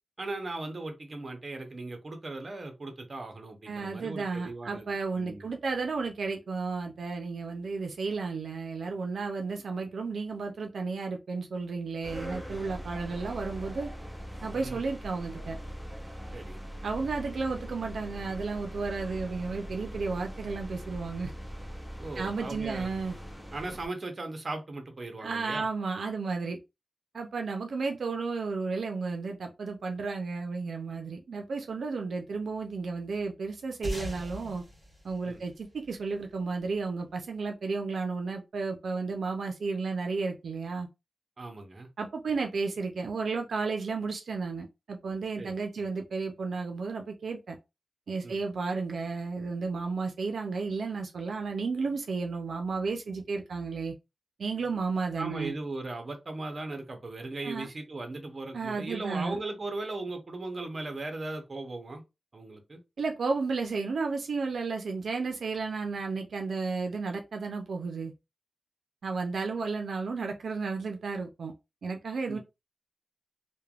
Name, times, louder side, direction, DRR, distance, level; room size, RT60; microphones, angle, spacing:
voice 1, 0.2-4.9 5.2-5.5 14.6-14.8 16.3-16.6 22.0-22.9 23.5-25.7 35.2-35.4 41.4-41.9 45.4-45.9 48.2-48.4 55.2-62.0 62.3-62.8 72.3-72.4, right 2 dB, 40° right, 0.7 m, -38 dB
voice 2, 3.7-13.9 14.4-15.6 16.8-21.3 22.2-23.2 25.2-26.6 27.1-34.6 35.0-40.9 42.0-47.6 48.1-53.9 54.4-55.5 57.4-57.7 58.5-59.4 63.0-68.1 69.0-71.5 71.8-72.4, right 4 dB, 90° right, 0.4 m, -33 dB
sound 1, 12.0-23.9, equal, ahead, 0.5 m, -41 dB
sound 2, 33.8-36.6, equal, 20° left, 1.4 m, -40 dB
3.2 x 2.1 x 2.3 m
wide cardioid pair, 135°, 0 cm